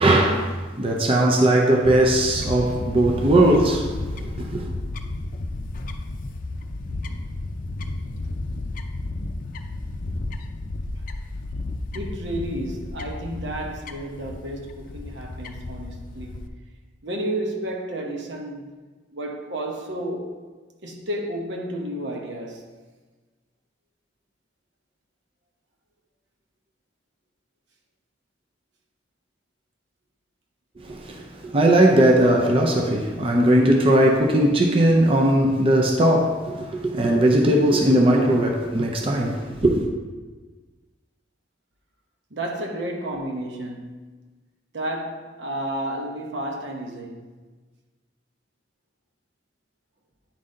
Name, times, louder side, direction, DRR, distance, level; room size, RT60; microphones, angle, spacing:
voice 1, 0.0-3.9 4.4-4.7 30.8-39.8, right 1 dB, 30° right, 0.6 m, -19 dB
Fowl / Bird, 1.8-16.5, left 2 dB, 50° left, 0.5 m, -32 dB
voice 2, 11.9-16.5 17.0-18.8 19.1-20.4 20.8-22.7 42.3-44.1 44.7-47.3, right 1 dB, 75° right, 1.0 m, -31 dB
9.6 x 4.1 x 3.7 m
head